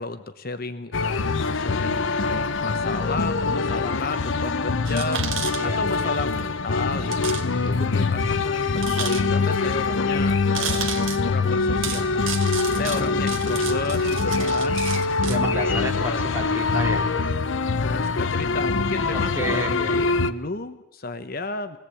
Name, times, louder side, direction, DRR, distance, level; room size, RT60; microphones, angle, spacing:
voice 1, 0.0-12.3 12.7-15.1 15.5-16.3 17.8-21.8, left 3 dB, 50° left, 9 dB, 1.0 m, -33 dB
sound 1, 0.9-20.3, left 4 dB, 75° left, 0.8 m, -24 dB
sound 2, 4.9-6.0 6.3-6.4 7.1-7.5 7.7-7.8 8.8-9.6 10.5-11.2 11.8-15.4, right 8 dB, 85° right, 1.7 m, -32 dB
voice 2, 5.6-6.1 12.7-14.2 15.2-17.1 19.1-20.2, equal, 10° right, 1 dB, 3.0 m, -32 dB
22.0 x 18.0 x 8.4 m, 0.96 s
head